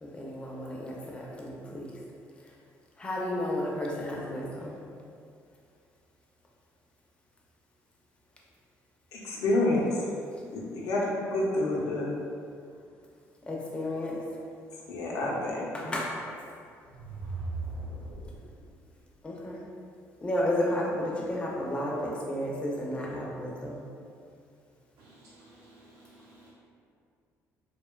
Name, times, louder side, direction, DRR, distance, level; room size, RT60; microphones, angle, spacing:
voice 1, 0.0-1.9 3.0-4.8 13.5-14.2 15.7-16.2 19.2-19.6 20.2-23.8, left 1 dB, 15° left, -3 dB, 0.4 m, -32 dB
voice 2, 9.1-10.0 10.5-12.1 14.9-15.9, left 2 dB, 90° left, -4 dB, 0.5 m, -28 dB
sound 1, 16.7-18.7, right 3 dB, 45° right, 0.9 m, -38 dB
voice 3, 25.0-26.5, right 1 dB, 75° right, -7 dB, 0.7 m, -56 dB
2.6 x 2.1 x 2.2 m, 2.3 s
cardioid pair, 130°, 6 cm